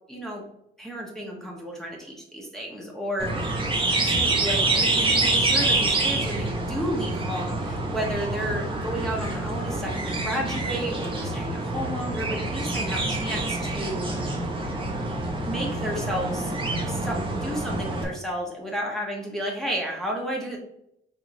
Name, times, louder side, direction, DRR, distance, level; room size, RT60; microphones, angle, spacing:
voice 1, 0.1-0.4 0.8-3.7 4.0-14.3 15.4-16.5 16.9-20.6, equal, ahead, -3 dB, 1.1 m, -32 dB
sound 1, 3.2-18.0, right 2 dB, 25° right, 1.1 m, -26 dB
5.0 x 2.9 x 2.7 m, 0.78 s
cardioid pair, 90°, 20 cm